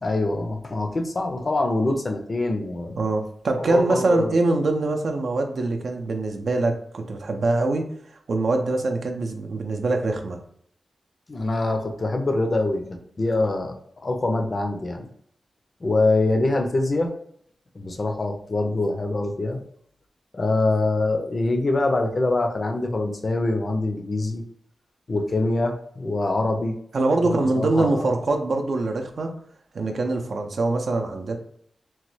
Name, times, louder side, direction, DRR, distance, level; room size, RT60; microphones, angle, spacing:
voice 1, 0.0-3.0 3.7-4.3 11.3-12.8 13.2-13.8 14.0-15.1 15.8-17.1 17.7-19.6 20.3-24.4 25.1-26.8 27.2-28.0, left 2 dB, 40° left, 4 dB, 0.5 m, -24 dB
voice 2, 3.0-7.9 8.3-10.4 26.9-29.3 29.7-31.4, right 2 dB, 70° right, 4 dB, 0.4 m, -23 dB
3.0 x 2.2 x 3.1 m, 0.66 s
wide cardioid pair, 95°, 0 cm